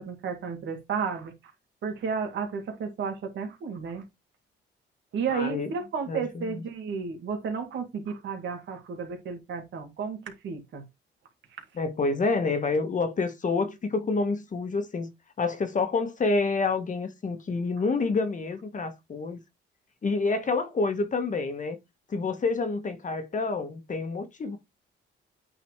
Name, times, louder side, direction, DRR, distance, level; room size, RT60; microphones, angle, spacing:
voice 1, 0.0-1.3 1.8-4.0 5.1-10.9, right 6 dB, 70° right, 2.3 m, -32 dB
voice 2, 5.3-5.7 6.1-6.6 11.7-19.4 20.0-21.8 22.1-24.6, left 3 dB, 40° left, 1.5 m, -28 dB
8.6 x 4.0 x 3.3 m
cardioid pair, 90°, 20 cm